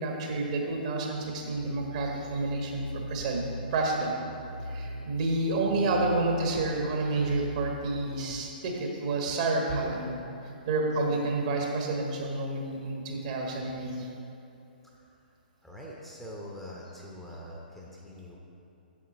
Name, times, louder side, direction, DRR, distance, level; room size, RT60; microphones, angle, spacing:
voice 1, 0.0-3.4 3.7-4.1 4.6-10.1 10.7-14.1, right 2 dB, 45° right, 0 dB, 1.3 m, -29 dB
sound 1, 1.1-8.3, equal, 65° right, 0.6 m, -41 dB
voice 2, 15.6-18.4, equal, ahead, -4 dB, 0.8 m, -43 dB
7.8 x 7.5 x 4.2 m, 2.7 s
figure-of-eight pair, 120°, 5 cm